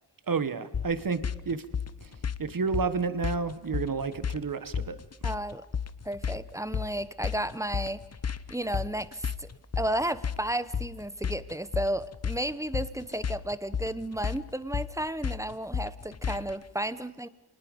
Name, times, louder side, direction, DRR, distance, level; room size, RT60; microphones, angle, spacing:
voice 1, 0.3-1.6 2.0-2.1 2.4-5.0, right 5 dB, 50° right, 12 dB, 1.5 m, -30 dB
sound 1, 0.7-16.6, left 7 dB, 35° left, 0.9 m, -34 dB
voice 2, 5.2-5.6 6.0-8.0 8.5-9.5 9.8-17.3, right 1 dB, 5° right, 15 dB, 1.0 m, -33 dB
27.0 x 19.5 x 5.4 m, 1.1 s
wide cardioid pair, 70°, 41 cm